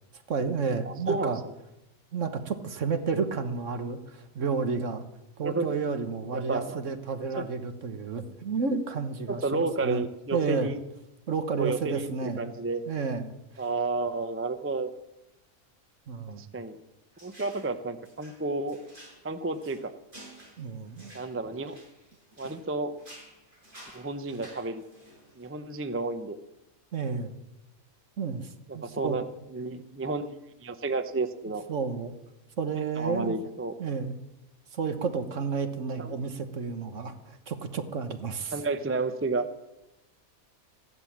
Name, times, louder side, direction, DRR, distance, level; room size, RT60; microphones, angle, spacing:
voice 1, 0.3-1.4 2.1-5.0 5.4-10.0 10.3-10.7 11.3-12.5 12.9-13.3 16.1-16.4 20.6-21.1 26.9-27.3 28.2-29.2 31.7-32.1 32.6-33.3 33.8-34.2 34.7-38.6, right 5 dB, 60° right, 8 dB, 1.5 m, -31 dB
voice 2, 0.8-1.5 5.4-5.7 6.3-6.8 7.4-7.5 9.3-10.8 11.6-12.1 12.4-12.8 13.6-14.9 16.4-16.8 17.2-18.8 19.2-19.9 21.1-21.8 22.4-22.9 23.9-24.8 25.4-26.4 28.7-29.2 29.5-30.3 30.6-31.6 33.0-33.7 36.0-36.2 38.5-39.5, right 3 dB, 15° right, 10 dB, 0.5 m, -31 dB
sound 1, 17.2-17.8 18.1-22.7 23.0-25.5, right 1 dB, 35° right, 6.6 m, -52 dB
15.0 x 11.0 x 7.3 m, 0.92 s
omnidirectional pair, 1.5 m